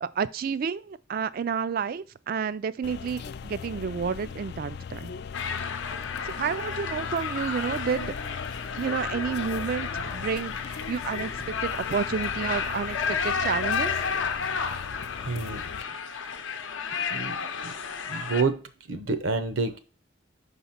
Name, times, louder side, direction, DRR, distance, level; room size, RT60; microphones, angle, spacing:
voice 1, 0.0-5.1 6.2-8.1 8.8-13.9, right 6 dB, 45° right, 0.3 m, -30 dB
sound 1, 2.8-15.8, left 6 dB, 55° left, 0.3 m, -39 dB
sound 2, 5.3-18.4, left 6 dB, 75° left, 0.7 m, -32 dB
voice 2, 15.3-15.6 16.2-16.4 17.1-17.4 17.6-17.7 18.1-18.6 18.9-19.8, right 4 dB, 80° right, 0.8 m, -28 dB
5.5 x 4.1 x 5.8 m
head